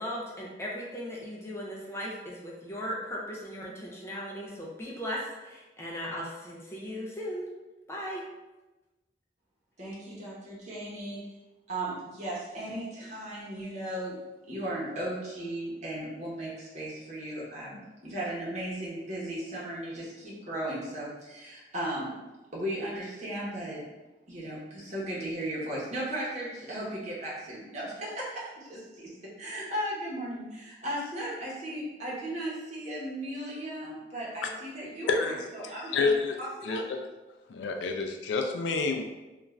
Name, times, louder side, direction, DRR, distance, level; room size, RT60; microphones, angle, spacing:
voice 1, 0.0-7.5 7.9-8.2, equal, 15° left, -4 dB, 0.4 m, -37 dB
voice 2, 9.8-11.3 11.7-14.2 14.5-22.2 22.5-23.8 24.3-36.8, right 1 dB, 40° right, -6 dB, 0.9 m, -36 dB
voice 3, 35.1-36.4 36.6-37.0 37.5-39.0, left 4 dB, 85° left, 4 dB, 0.4 m, -29 dB
2.4 x 2.4 x 3.1 m, 1.1 s
head